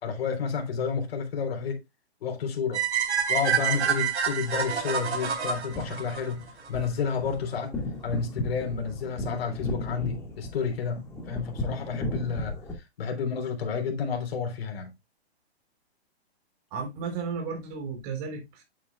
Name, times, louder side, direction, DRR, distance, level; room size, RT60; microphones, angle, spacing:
voice 1, 0.0-1.8 2.2-2.8 3.3-7.7 8.0-14.9, left 6 dB, 60° left, 3.6 m, -31 dB
sound 1, 2.7-6.9, right 7 dB, 85° right, 3.7 m, -27 dB
sound 2, 5.6-12.7, left 1 dB, 10° left, 1.7 m, -36 dB
voice 2, 16.7-18.6, right 5 dB, 35° right, 3.6 m, -34 dB
8.5 x 8.4 x 2.3 m
hypercardioid pair, 150°, 33 cm